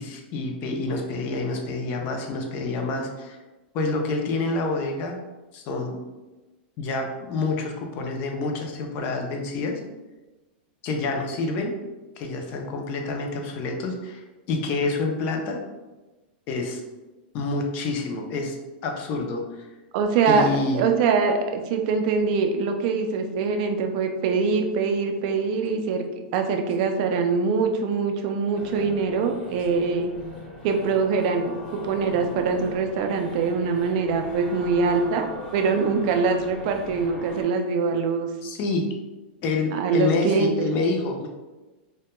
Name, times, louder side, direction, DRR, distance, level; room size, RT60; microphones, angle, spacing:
voice 1, 0.0-3.4 3.7-5.2 5.5-6.0 6.8-9.8 10.8-11.7 12.2-15.6 16.5-16.8 17.3-18.6 18.8-19.7 20.3-20.8 38.4-38.8 39.4-41.3, left 3 dB, 35° left, 2 dB, 0.4 m, -27 dB
voice 2, 19.9-20.5 20.7-26.0 26.3-30.1 30.6-38.3 39.7-40.7, right 5 dB, 45° right, 5 dB, 0.3 m, -23 dB
sound 1, 28.5-37.4, left 2 dB, 70° left, 1.0 m, -40 dB
2.1 x 2.1 x 2.9 m, 1.1 s
supercardioid pair, 155°, 6 cm